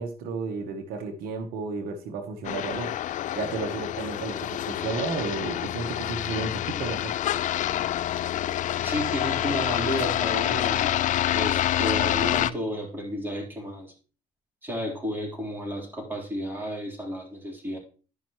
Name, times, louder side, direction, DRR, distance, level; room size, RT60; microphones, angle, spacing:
voice 1, 0.0-2.9 3.3-7.2, right 4 dB, 80° right, 6 dB, 1.2 m, -32 dB
sound 1, 2.4-12.5, left 12 dB, 55° left, 0.4 m, -27 dB
voice 2, 8.8-11.0 11.3-13.9 14.6-17.8, equal, 15° right, -1 dB, 3.8 m, -32 dB
11.0 x 5.6 x 3.0 m, 0.38 s
supercardioid pair, 75°, 15 cm